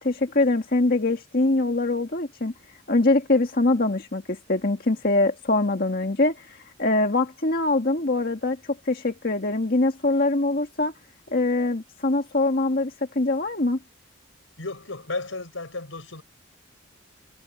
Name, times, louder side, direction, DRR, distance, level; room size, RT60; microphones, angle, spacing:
voice 1, 0.0-2.5 2.9-10.9 11.3-13.8, left 2 dB, 50° left, 1.7 m, -23 dB
voice 2, 14.6-16.2, left 3 dB, 90° left, 5.2 m, -33 dB
head